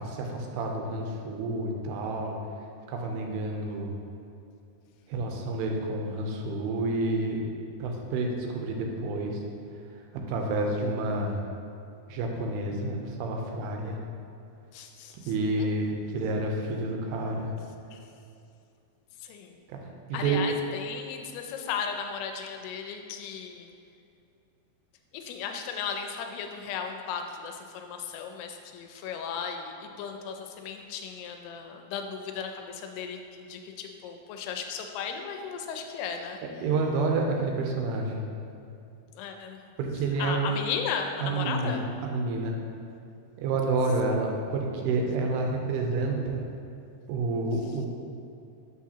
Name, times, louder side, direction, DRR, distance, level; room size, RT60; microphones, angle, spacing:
voice 1, 0.0-2.4 2.9-3.9 5.1-7.4 7.8-9.4 10.3-11.4 12.1-14.0 15.3-17.5 19.7-19.8 20.1-20.4 36.6-38.3 39.8-40.5 41.2-41.8 42.0-42.6 43.4-46.5 47.1-47.9, right 2 dB, 85° right, 1 dB, 2.7 m, -29 dB
voice 2, 14.7-15.2 15.6-15.7 16.6-16.9 17.9-18.0 19.2-19.6 20.1-23.7 25.1-36.4 39.2-39.6 40.2-41.8, left 6 dB, 90° left, 4 dB, 2.6 m, -36 dB
7.3 x 5.9 x 2.8 m, 2.6 s
omnidirectional pair, 4.6 m